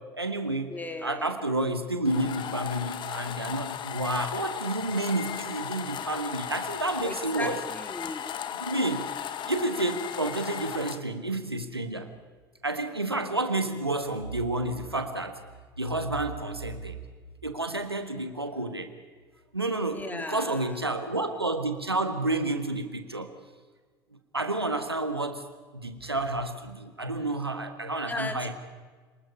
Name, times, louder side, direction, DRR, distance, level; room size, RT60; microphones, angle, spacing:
voice 1, 0.0-0.7 1.0-7.6 8.6-9.1 9.5-12.1 12.6-15.4 15.8-17.0 17.4-18.9 19.5-23.3 24.3-25.4 25.7-28.5, right 2 dB, 90° right, 8 dB, 1.4 m, -30 dB
voice 2, 0.7-1.3 7.0-8.3 19.9-20.8 28.1-28.5, left 2 dB, 15° left, 7 dB, 2.4 m, -36 dB
sound 1, 2.0-11.0, left 9 dB, 40° left, 1.2 m, -36 dB
28.0 x 20.0 x 5.5 m, 1.4 s
figure-of-eight pair, 70°, 13 cm